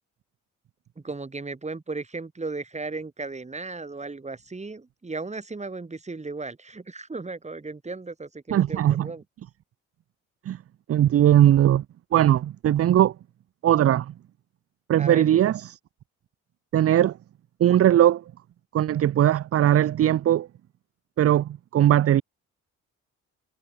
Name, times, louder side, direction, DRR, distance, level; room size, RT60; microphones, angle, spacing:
voice 1, 1.0-9.2 15.0-15.5, right 3 dB, 20° right, 6.3 m, -36 dB
voice 2, 8.5-9.1 10.5-10.6 10.9-11.8 12.1-13.1 13.6-14.1 14.9-15.6 16.7-17.1 17.6-18.2 18.7-20.5 21.2-22.2, right 11 dB, 50° right, 0.6 m, -19 dB
cardioid pair, 90°, 30 cm